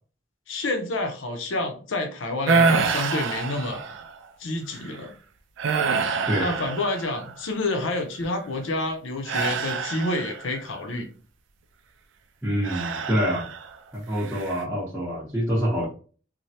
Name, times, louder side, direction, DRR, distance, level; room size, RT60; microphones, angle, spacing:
voice 1, 0.5-3.8 4.4-5.1 6.4-11.1, left 2 dB, 80° left, 4 dB, 0.6 m, -28 dB
sound 1, 2.5-4.2 4.7-5.0 5.6-7.4 9.3-10.6 12.6-13.7 14.2-14.6, right 4 dB, 75° right, 0.4 m, -26 dB
voice 2, 6.3-6.6 12.4-13.5 13.9-15.8, equal, 10° right, -8 dB, 0.8 m, -26 dB
3.2 x 2.1 x 2.7 m, 0.39 s
head